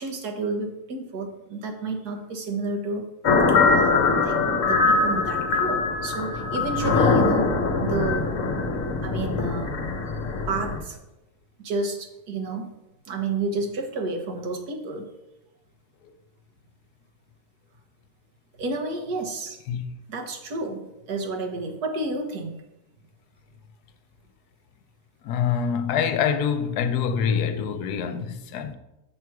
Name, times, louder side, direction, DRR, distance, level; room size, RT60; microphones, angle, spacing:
voice 1, 0.0-3.1 3.5-7.5 7.8-8.3 9.0-9.8 10.5-11.0 11.6-12.7 13.1-15.1 18.6-19.6 20.1-22.6, right 3 dB, 75° right, 1.7 m, -31 dB
sound 1, 3.2-10.8, left 4 dB, 55° left, 1.2 m, -22 dB
voice 2, 25.2-28.7, left 7 dB, 80° left, 1.2 m, -25 dB
7.3 x 6.1 x 4.7 m
omnidirectional pair, 1.7 m